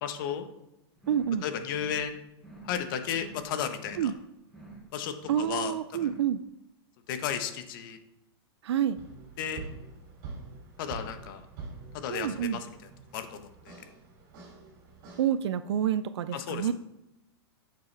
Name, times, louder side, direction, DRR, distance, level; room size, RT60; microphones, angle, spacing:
voice 1, 0.0-0.5 1.4-2.2 2.6-4.0 4.9-5.7 7.1-8.0 9.4-9.6 10.8-11.4 11.9-12.7 13.1-13.8 16.3-16.7, left 8 dB, 55° left, 8 dB, 1.1 m, -33 dB
sound 1, 1.0-1.4 1.7-2.1 2.4-2.8 3.1-3.5 3.8-4.2 4.5-4.9 5.2-5.6 5.9-6.3, right 3 dB, ahead, 3.5 m, -49 dB
voice 2, 1.1-1.4 4.0-4.1 5.3-6.4 8.6-9.0 12.1-12.6 15.2-16.7, right 9 dB, 85° right, 13 dB, 0.4 m, -28 dB
sound 2, 9.0-15.3, right 4 dB, 50° right, 2.7 m, -46 dB
10.5 x 6.7 x 3.4 m, 0.89 s
hypercardioid pair, 145°, 14 cm